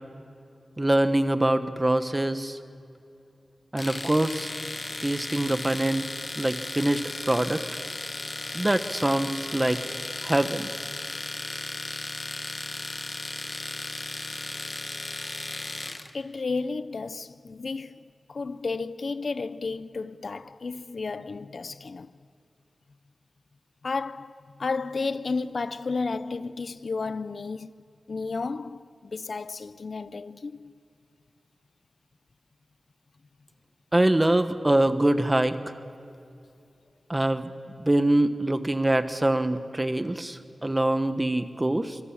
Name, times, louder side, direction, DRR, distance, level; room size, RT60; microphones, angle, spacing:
voice 1, 0.8-2.6 3.7-4.5 5.0-7.6 8.5-9.8 10.2-10.7 33.9-35.7 37.1-37.5 37.8-42.0, right 1 dB, 20° right, 1.2 m, -24 dB
Domestic sounds home sounds, 3.8-16.1, left 2 dB, 35° left, 1.3 m, -35 dB
voice 2, 16.1-22.1 23.8-27.7 28.1-30.7, left 4 dB, 65° left, 0.6 m, -32 dB
25.5 x 24.5 x 7.4 m
wide cardioid pair, 100°, 0 cm